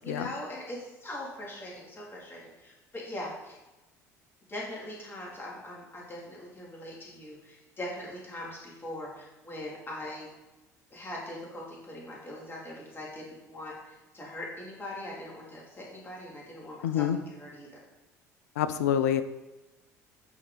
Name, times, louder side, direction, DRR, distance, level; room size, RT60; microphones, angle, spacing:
voice 1, 0.0-3.6 4.5-10.3 10.9-17.1 17.4-17.7, left 1 dB, 25° left, -4 dB, 3.1 m, -41 dB
voice 2, 16.8-17.2 18.6-19.2, left 9 dB, 75° left, 11 dB, 0.5 m, -26 dB
11.0 x 4.9 x 4.1 m, 1.1 s
figure-of-eight pair, 60°, 9 cm